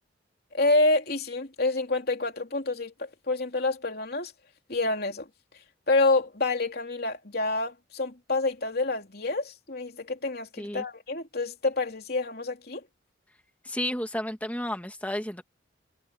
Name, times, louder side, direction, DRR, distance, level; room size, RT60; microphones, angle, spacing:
voice 1, 0.5-4.3 4.7-5.3 5.9-12.8, left 2 dB, 55° left, 3.3 m, -27 dB
voice 2, 13.6-15.4, left 1 dB, 10° left, 2.1 m, -32 dB
head